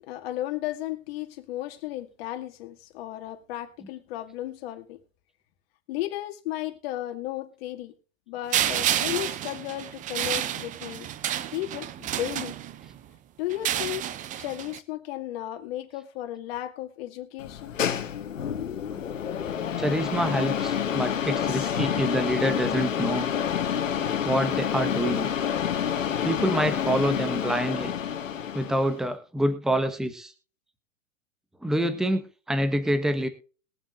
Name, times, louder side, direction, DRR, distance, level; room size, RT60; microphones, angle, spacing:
voice 1, 0.1-5.0 5.9-7.9 8.3-11.1 11.5-12.5 13.4-14.0 14.4-17.7, left 14 dB, 50° left, 2.1 m, -34 dB
sound 1, 8.5-13.0 13.5-14.8, right 11 dB, 20° right, 0.7 m, -30 dB
sound 2, 17.4-29.0, left 8 dB, 85° left, 1.6 m, -28 dB
voice 2, 19.8-23.3 24.2-25.3 26.2-27.9 28.5-30.3 31.6-33.3, right 1 dB, ahead, 1.0 m, -26 dB
21.5 x 7.4 x 2.4 m
hypercardioid pair, 120°, 38 cm